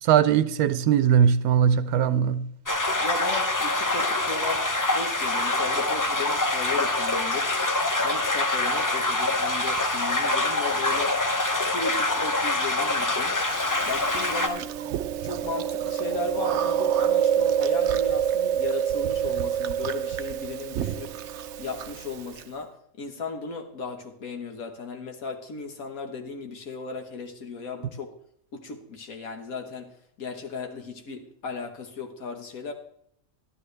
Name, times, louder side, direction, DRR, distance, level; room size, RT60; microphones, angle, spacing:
voice 1, 0.0-2.5, right 8 dB, 90° right, 1.1 m, -20 dB
sound 1, 2.7-14.5, left 2 dB, 20° left, 0.5 m, -25 dB
voice 2, 3.0-7.5 8.0-11.2 11.6-13.4 13.8-21.2 21.6-28.1 28.5-29.9 30.2-32.7, left 4 dB, 75° left, 1.8 m, -36 dB
Chewing mastication, 13.5-22.4, right 9 dB, 65° right, 0.8 m, -27 dB
12.0 x 12.0 x 3.3 m
omnidirectional pair, 1.5 m